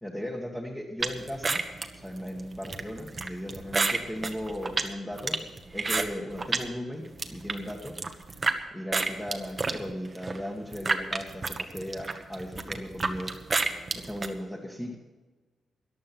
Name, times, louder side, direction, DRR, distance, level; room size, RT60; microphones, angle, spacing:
voice 1, 0.0-1.6 1.9-5.4 5.7-7.9 8.7-13.3 14.0-14.9, equal, 10° left, -3 dB, 1.8 m, -37 dB
sound 1, 1.0-6.7 7.0-8.6 8.9-14.3, right 3 dB, 30° right, 1.2 m, -30 dB
14.0 x 11.0 x 6.0 m, 1.2 s
wide cardioid pair, 130°, 0 cm